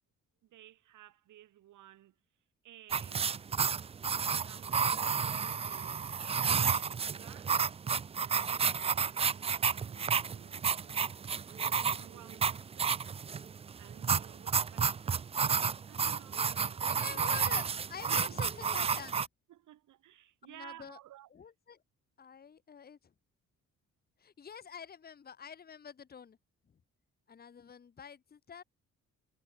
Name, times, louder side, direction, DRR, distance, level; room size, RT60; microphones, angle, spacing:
voice 1, 0.4-2.1 2.6-3.5 4.4-5.0 5.3-7.6 8.2-11.0 11.5-13.0 13.8-15.3 15.9-17.5 18.1-18.4 19.5-21.3, right 13 dB, 80° right, 5.9 m, -56 dB
sound 1, 2.9-19.3, right 6 dB, 20° right, 0.3 m, -31 dB
voice 2, 16.8-19.3 20.5-21.0 21.3-21.8 22.2-23.1 24.2-26.4 27.3-28.6, left 7 dB, 30° left, 1.0 m, -47 dB
cardioid pair, 90°, 30 cm